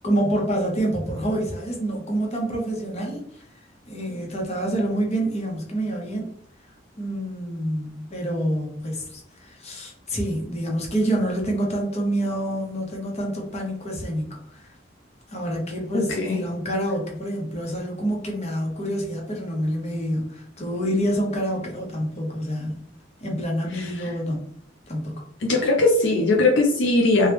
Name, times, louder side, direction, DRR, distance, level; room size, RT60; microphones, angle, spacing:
voice 1, 0.0-3.4 3.9-6.3 7.0-14.7 15.3-22.9 23.2-24.5 24.9-25.2, right 1 dB, 35° left, -1 dB, 0.9 m, -27 dB
voice 2, 15.9-16.4 23.7-23.9 25.4-27.3, left 2 dB, 70° left, 0 dB, 0.5 m, -20 dB
2.9 x 2.3 x 3.3 m, 0.67 s
head